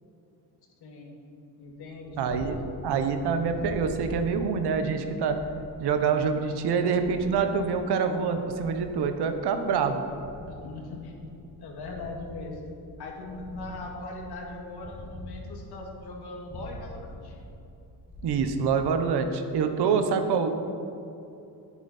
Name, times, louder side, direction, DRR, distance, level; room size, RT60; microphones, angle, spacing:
voice 1, 0.8-1.1 1.6-2.5 10.5-11.1 11.6-12.7 13.0-17.4, left 2 dB, 70° left, 0 dB, 2.2 m, -40 dB
Purr, 2.0-19.5, left 1 dB, 20° left, 1.5 m, -45 dB
voice 2, 2.2-5.3 5.8-10.0 18.2-20.5, right 5 dB, 75° right, 7 dB, 1.1 m, -26 dB
10.5 x 10.0 x 4.3 m, 2.7 s
cardioid pair, 130°, 40 cm